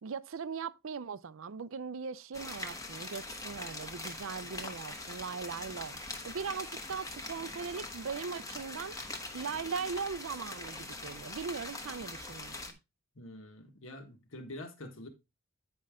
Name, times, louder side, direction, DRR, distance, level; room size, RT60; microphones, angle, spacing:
voice 1, 0.0-12.6, right 5 dB, 65° right, 0.5 m, -39 dB
sound 1, 2.3-12.7, left 2 dB, 15° left, 1.0 m, -43 dB
voice 2, 13.1-15.1, left 1 dB, 65° left, 1.6 m, -46 dB
9.5 x 5.4 x 3.6 m
head